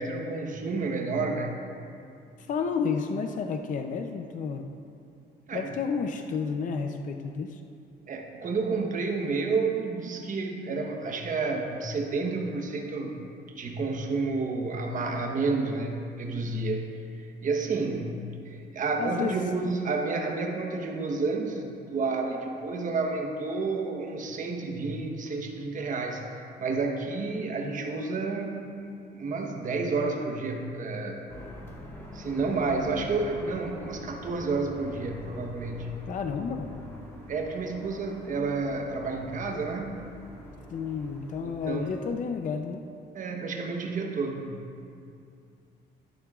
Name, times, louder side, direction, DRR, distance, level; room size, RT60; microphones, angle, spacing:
voice 1, 0.0-1.6 5.5-5.7 8.1-13.2 13.6-28.7 29.1-31.3 32.1-35.9 37.3-40.0 41.4-41.9 43.1-44.5, right 3 dB, 45° right, 2 dB, 1.0 m, -30 dB
voice 2, 2.4-4.7 5.5-7.6 19.0-19.4 36.1-36.7 40.7-42.8, left 5 dB, 45° left, 5 dB, 0.5 m, -31 dB
sound 1, 31.3-42.2, equal, 15° left, 1.5 m, -44 dB
12.0 x 11.0 x 2.4 m, 2.5 s
cardioid pair, 135°, 18 cm